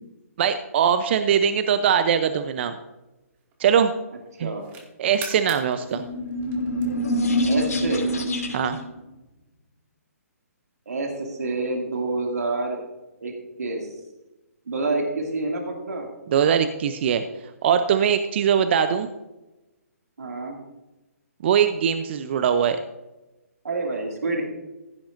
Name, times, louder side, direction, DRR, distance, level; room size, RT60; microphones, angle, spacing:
voice 1, 0.4-2.8 3.6-3.9 4.4-4.5 5.0-6.0 8.5-8.8 16.3-17.2 17.6-19.1 21.4-22.8, right 8 dB, 45° right, 9 dB, 0.7 m, -21 dB
sound 1, 3.0-3.8 4.3-7.3, right 5 dB, 25° right, 2.2 m, -43 dB
sound 2, 5.8-8.9, equal, 80° left, 2.5 m, -25 dB
voice 2, 7.5-8.1 10.9-12.8 13.2-13.3 13.6-14.0 14.7-16.1 20.2-20.6 23.6-24.4, right 2 dB, 75° right, 1 dB, 2.4 m, -27 dB
16.0 x 10.0 x 2.6 m, 1.0 s
hypercardioid pair, 140°, 8 cm